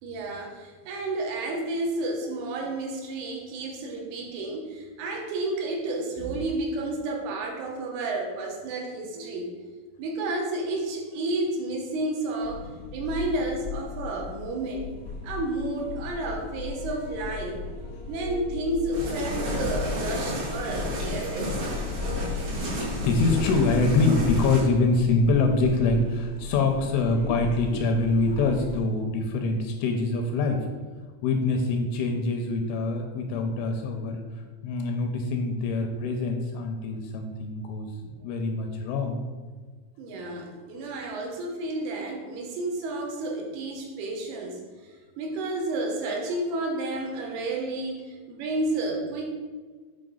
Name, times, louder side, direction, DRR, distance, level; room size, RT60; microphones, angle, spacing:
voice 1, 0.0-9.5 10.0-14.9 15.2-17.6 18.1-21.6 40.0-49.3, right 2 dB, 80° right, 0 dB, 3.5 m, -31 dB
sound 1, 12.4-28.8, left 4 dB, 40° left, 1.2 m, -38 dB
voice 2, 16.8-17.4 17.8-18.7 19.3-19.7 20.2-21.5 21.9-30.7 31.2-34.2 34.6-39.2, left 3 dB, 80° left, 3 dB, 3.0 m, -26 dB
sound 2, 18.9-24.6, left 1 dB, 60° right, 4.1 m, -30 dB
8.7 x 5.5 x 3.9 m, 1.5 s
omnidirectional pair, 5.9 m